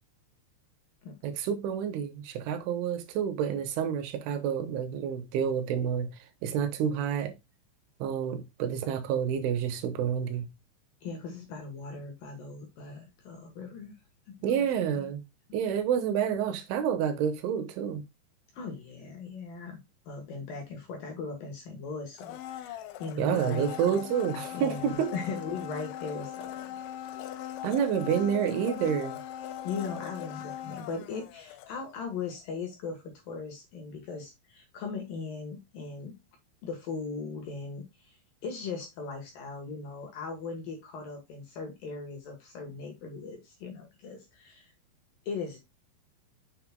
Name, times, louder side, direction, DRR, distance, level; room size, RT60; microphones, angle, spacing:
voice 1, 1.2-6.1 6.4-7.3 8.0-10.5 14.4-15.2 15.5-18.0 23.2-25.1 27.6-29.2, right 8 dB, 80° right, 3.6 m, -29 dB
voice 2, 11.0-13.9 14.3-15.1 18.5-19.8 20.1-24.0 24.5-26.8 29.6-36.2 36.6-44.7 45.3-45.6, left 4 dB, 65° left, 2.4 m, -39 dB
Domestic sounds home sounds, 22.2-32.1 32.4-32.5, left 11 dB, 80° left, 3.1 m, -40 dB
7.5 x 7.2 x 2.2 m
omnidirectional pair, 5.4 m